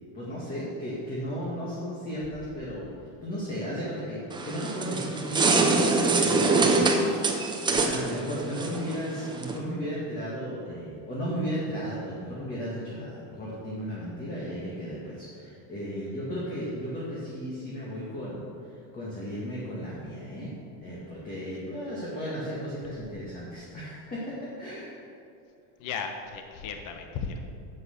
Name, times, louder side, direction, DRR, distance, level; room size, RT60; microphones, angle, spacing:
voice 1, 0.1-2.9 3.2-18.5 18.9-20.5 20.8-24.2 24.6-24.9, equal, 20° left, -7 dB, 2.0 m, -35 dB
sound 1, 4.3-9.6, right 3 dB, 10° right, 0.7 m, -24 dB
voice 2, 25.8-27.4, left 5 dB, 45° left, 4 dB, 1.1 m, -35 dB
9.7 x 8.2 x 6.6 m, 2.6 s
cardioid pair, 165°, 45 cm